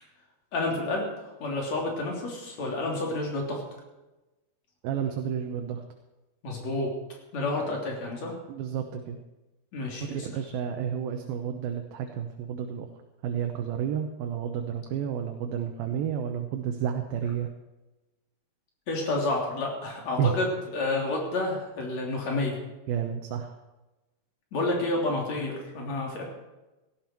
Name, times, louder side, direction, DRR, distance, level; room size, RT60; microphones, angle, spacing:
voice 1, 0.5-3.6 6.4-6.9 7.3-8.3 9.7-10.3 18.9-20.5 20.7-22.6 24.5-26.2, left 2 dB, 45° left, -1 dB, 4.2 m, -29 dB
voice 2, 4.8-5.8 8.5-9.2 10.1-12.9 13.2-17.5 20.2-20.3 22.9-23.6, right 8 dB, 75° right, 4 dB, 2.7 m, -31 dB
17.5 x 13.0 x 4.6 m, 1.1 s
omnidirectional pair, 4.4 m